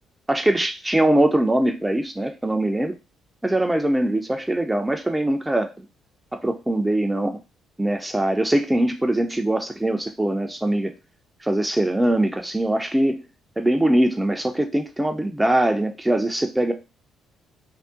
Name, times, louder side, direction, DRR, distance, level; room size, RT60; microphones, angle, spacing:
voice 1, 0.3-3.0 3.4-5.9 6.3-7.4 7.8-10.9 11.4-13.2 13.6-16.7, right 1 dB, 10° right, 4 dB, 0.4 m, -22 dB
3.5 x 2.1 x 2.6 m, 0.28 s
hypercardioid pair, 50°, 0 cm